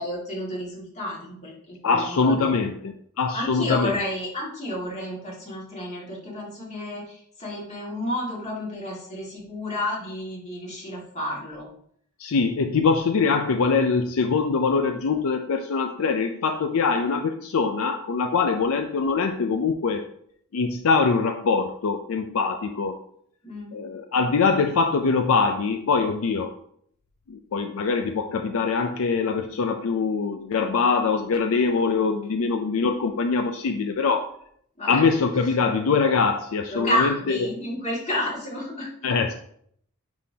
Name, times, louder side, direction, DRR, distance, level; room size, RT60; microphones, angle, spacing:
voice 1, 0.0-2.5 3.3-11.7 23.4-23.8 34.8-35.0 35.4-35.5 36.7-38.9, left 1 dB, 30° left, -4 dB, 2.1 m, -31 dB
voice 2, 1.8-3.9 12.2-20.1 20.5-23.0 23.7-26.5 27.3-34.3 34.9-37.5 39.0-39.3, left 4 dB, 65° left, 6 dB, 0.4 m, -23 dB
9.9 x 3.8 x 2.8 m, 0.66 s
head